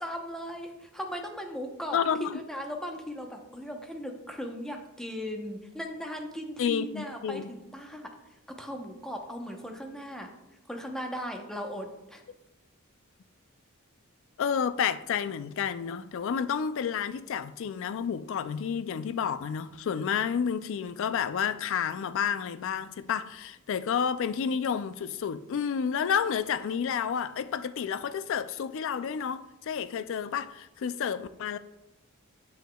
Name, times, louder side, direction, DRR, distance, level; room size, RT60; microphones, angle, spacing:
voice 1, 0.0-2.0 2.3-8.1 8.6-10.3 10.7-12.2, equal, 5° left, 0.8 m, -38 dB
voice 2, 1.9-2.4 6.6-7.5 14.4-31.6, left 7 dB, 65° left, 0.4 m, -30 dB
9.1 x 7.0 x 2.3 m
head